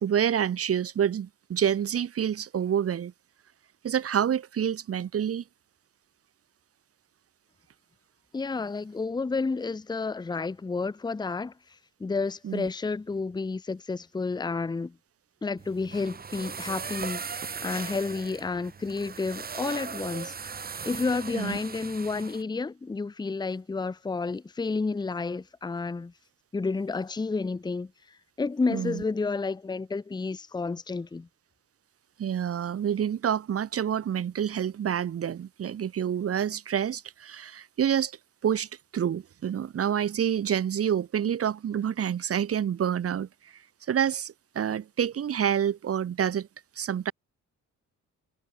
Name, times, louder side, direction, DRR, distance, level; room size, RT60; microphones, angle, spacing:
voice 1, 0.0-3.1 3.8-5.4 12.4-12.7 21.3-21.6 28.7-29.0 32.2-38.1 38.4-38.7 38.9-43.3 43.9-46.5 46.8-47.1, right 9 dB, 50° right, 2.1 m, -28 dB
voice 2, 8.3-11.5 12.0-14.9 15.4-20.3 20.8-26.1 26.5-27.9 28.4-31.3, left 4 dB, 15° left, 0.8 m, -30 dB
sound 1, 15.6-22.4, right 6 dB, 30° right, 1.8 m, -38 dB
cardioid pair, 125°, 30 cm